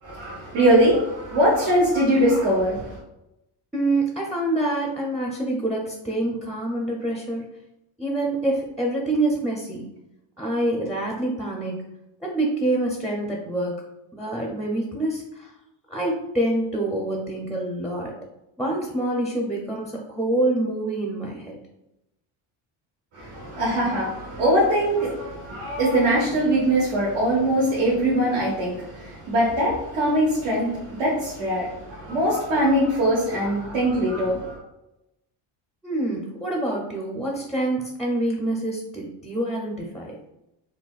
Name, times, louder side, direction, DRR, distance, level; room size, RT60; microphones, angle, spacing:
voice 1, 0.0-3.0 23.1-34.6, right 1 dB, 85° right, -7 dB, 1.2 m, -22 dB
voice 2, 3.7-7.5 8.0-9.9 10.4-11.8 12.2-13.8 14.1-15.5 15.9-18.1 18.6-21.6 35.8-40.2, right 1 dB, ahead, -1 dB, 0.4 m, -26 dB
4.0 x 2.2 x 2.3 m, 0.90 s
cardioid pair, 90°, 50 cm